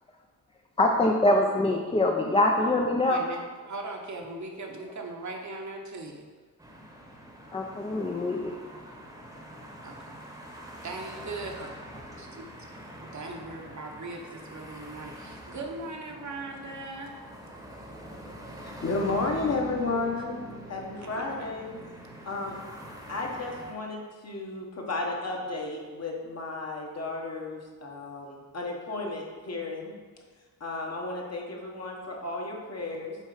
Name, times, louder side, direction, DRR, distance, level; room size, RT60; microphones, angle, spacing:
voice 1, 0.8-3.2 7.5-8.5, left 1 dB, 15° left, 1 dB, 0.5 m, -24 dB
voice 2, 3.1-6.3 9.8-10.2 10.8-11.7 12.2-12.5 13.0-17.1 19.5-20.1 21.0-21.5, right 3 dB, 55° right, 2 dB, 1.0 m, -39 dB
sound 1, 6.6-23.7, equal, 10° right, 1.0 m, -44 dB
voice 3, 18.8-20.4 20.7-21.7 22.2-22.5 23.1-29.9 30.6-33.2, left 3 dB, 45° left, -1 dB, 1.3 m, -33 dB
6.6 x 4.3 x 4.9 m, 1.4 s
wide cardioid pair, 100°, 35 cm